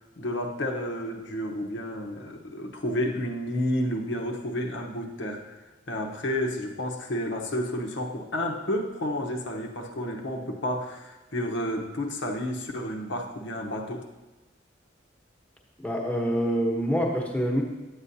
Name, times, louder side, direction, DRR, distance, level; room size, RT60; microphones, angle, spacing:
voice 1, 0.2-5.6 5.9-14.1, left 1 dB, 80° left, 2 dB, 1.0 m, -31 dB
voice 2, 15.8-17.6, equal, 5° left, -1 dB, 1.1 m, -26 dB
9.7 x 8.1 x 2.8 m, 1.1 s
head